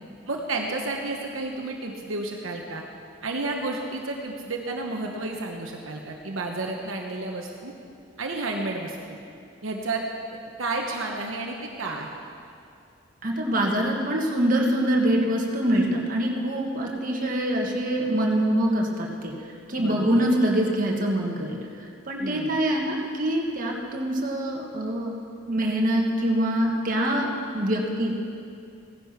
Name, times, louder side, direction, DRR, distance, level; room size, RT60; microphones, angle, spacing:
voice 1, 0.3-2.8 3.2-7.7 8.2-9.0 9.6-10.0 10.6-12.1 19.8-20.3 22.2-22.6, right 2 dB, 70° right, 1 dB, 1.1 m, -31 dB
voice 2, 13.2-19.3 19.7-21.6 22.1-25.1 25.5-27.3 27.5-28.1, right 1 dB, 40° right, -1 dB, 1.7 m, -24 dB
16.0 x 10.5 x 5.9 m, 2.5 s
head